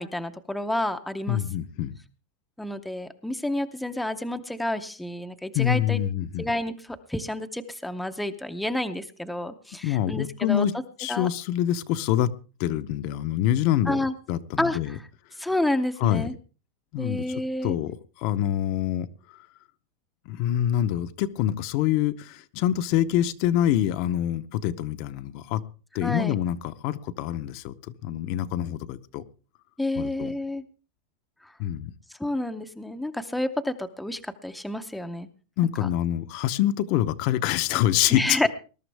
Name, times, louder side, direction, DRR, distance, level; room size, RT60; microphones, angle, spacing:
voice 1, 0.0-1.4 2.6-6.0 6.4-6.7 7.1-10.7 11.1-11.3 13.9-14.1 14.6-15.0 15.4-16.3 17.0-17.7 26.0-26.3 29.8-30.6 31.4-31.5 32.2-35.3 35.8-35.9 38.1-38.5, left 1 dB, ahead, 7 dB, 0.6 m, -29 dB
voice 2, 1.3-1.9 5.5-6.5 9.8-10.7 11.0-12.3 12.6-14.0 14.3-15.0 16.0-16.3 16.9-17.2 17.6-19.1 20.3-25.6 25.9-27.7 28.0-29.2 30.0-30.3 31.6-31.9 35.6-38.5, left 12 dB, 40° left, 11 dB, 0.7 m, -25 dB
20.5 x 12.0 x 3.4 m, 0.35 s
supercardioid pair, 175°, 0 cm